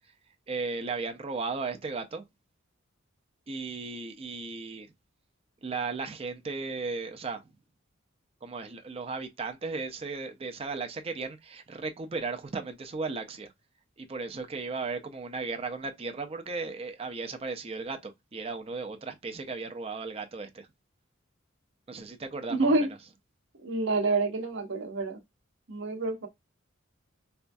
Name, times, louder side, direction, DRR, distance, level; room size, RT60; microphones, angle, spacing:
voice 1, 0.5-2.2 3.5-4.9 5.6-7.4 8.4-13.5 14.0-20.7 21.9-22.9, right 4 dB, 30° right, 0.5 m, -36 dB
voice 2, 22.5-22.9 23.6-25.2 25.7-26.3, right 2 dB, 60° right, 0.8 m, -27 dB
4.2 x 2.3 x 2.6 m
head